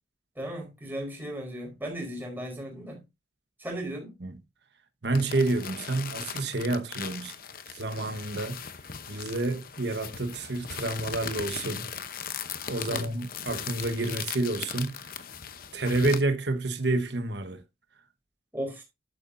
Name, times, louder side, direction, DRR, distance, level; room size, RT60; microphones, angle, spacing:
voice 1, 0.4-3.0 3.6-4.1 12.9-13.1 18.5-18.8, right 1 dB, 10° right, 4.4 m, -36 dB
voice 2, 5.0-7.3 7.8-8.6 9.1-11.9 12.7-15.0 15.7-17.6, right 2 dB, 60° right, 1.2 m, -29 dB
sound 1, 5.1-16.2, left 7 dB, 50° left, 0.8 m, -39 dB
11.5 x 8.2 x 2.6 m
head